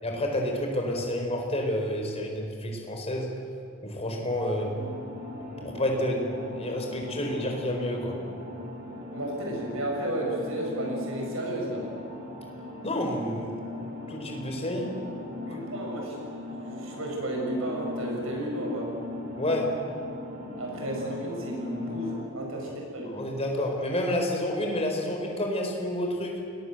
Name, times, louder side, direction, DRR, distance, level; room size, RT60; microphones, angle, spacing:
voice 1, 0.0-3.4 3.8-4.7 5.6-8.2 12.8-13.5 14.1-14.9 19.4-19.8 22.6-22.7 23.1-26.4, left 1 dB, 30° left, 1 dB, 4.7 m, -29 dB
sound 1, 4.7-22.2, left 2 dB, 50° right, 6.7 m, -39 dB
voice 2, 9.1-11.9 15.3-16.3 16.6-18.9 20.6-23.3, right 1 dB, 70° right, 0 dB, 7.3 m, -33 dB
30.0 x 21.0 x 8.0 m, 2.4 s
head